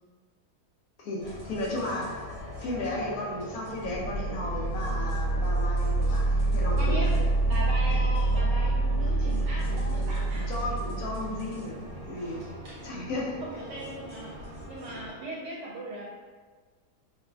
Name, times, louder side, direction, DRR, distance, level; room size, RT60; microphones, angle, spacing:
voice 1, 1.0-2.2 2.6-7.3 10.3-11.8 12.0-12.4 12.8-13.3, left 1 dB, 65° left, -3 dB, 1.0 m, -34 dB
sound 1, 1.2-15.1, equal, 60° right, 1.1 m, -42 dB
sound 2, 3.8-11.5, right 2 dB, 85° left, 1.2 m, -26 dB
voice 2, 6.8-7.1 7.4-10.5 13.4-14.4 14.7-16.1, right 1 dB, 80° right, -4 dB, 1.1 m, -38 dB
3.0 x 2.5 x 2.3 m, 1.5 s
omnidirectional pair, 1.9 m